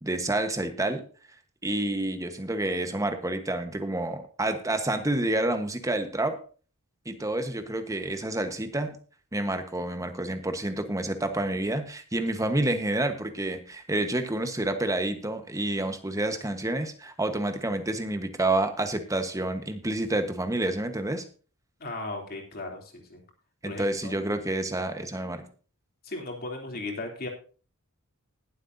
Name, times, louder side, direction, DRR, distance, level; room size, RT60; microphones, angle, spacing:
voice 1, 0.0-1.0 1.6-6.4 7.0-9.0 9.3-21.2 23.6-25.5, right 1 dB, 15° right, 7 dB, 1.2 m, -29 dB
voice 2, 21.8-23.2 23.6-24.1 26.0-27.3, left 2 dB, 45° left, 1 dB, 3.1 m, -36 dB
20.0 x 7.9 x 2.7 m, 0.38 s
head